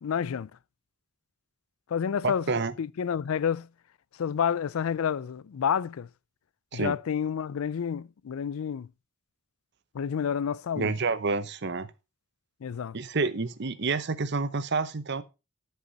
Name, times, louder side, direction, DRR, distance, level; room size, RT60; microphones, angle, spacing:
voice 1, 0.0-0.5 1.9-2.5 2.8-3.7 4.2-6.1 6.7-8.9 9.9-10.9 12.6-13.0, left 7 dB, 85° left, 0.4 m, -29 dB
voice 2, 2.2-2.7 6.7-7.0 10.8-11.9 12.9-15.2, right 4 dB, 55° right, 0.8 m, -29 dB
12.5 x 6.8 x 4.0 m
head